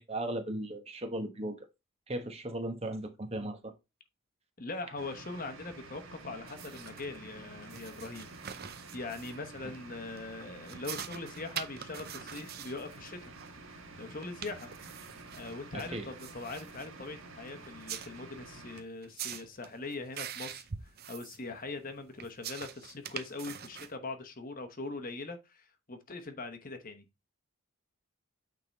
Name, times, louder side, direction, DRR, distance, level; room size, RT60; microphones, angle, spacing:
voice 1, 0.0-1.6 2.1-3.7 15.7-16.1, right 1 dB, 30° right, 1.1 m, -37 dB
voice 2, 4.6-8.3 8.6-13.3 13.7-14.7 15.3-27.0, left 3 dB, 40° left, 1.0 m, -42 dB
sound 1, 5.0-18.8, right 3 dB, 65° right, 1.5 m, -50 dB
sound 2, 6.5-24.0, right 8 dB, 45° right, 0.6 m, -45 dB
8.9 x 3.7 x 4.1 m
head